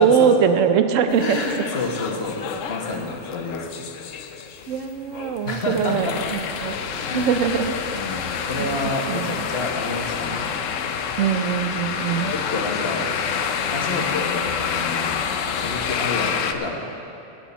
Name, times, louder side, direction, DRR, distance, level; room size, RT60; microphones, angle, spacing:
voice 1, 0.0-1.4 4.7-6.7 7.1-7.7 8.6-8.8 9.1-9.5 11.2-12.3, right 7 dB, 85° right, 8 dB, 1.1 m, -21 dB
sound 1, 1.1-16.5, left 7 dB, 85° left, 1.0 m, -28 dB
voice 2, 1.2-2.4 2.7-3.8 5.4-6.2 7.1-7.5 7.9-10.5 11.9-13.1 13.7-15.2 15.5-16.7, left 2 dB, 55° left, 0 dB, 1.6 m, -29 dB
16.5 x 9.2 x 4.2 m, 2.8 s
omnidirectional pair, 1.3 m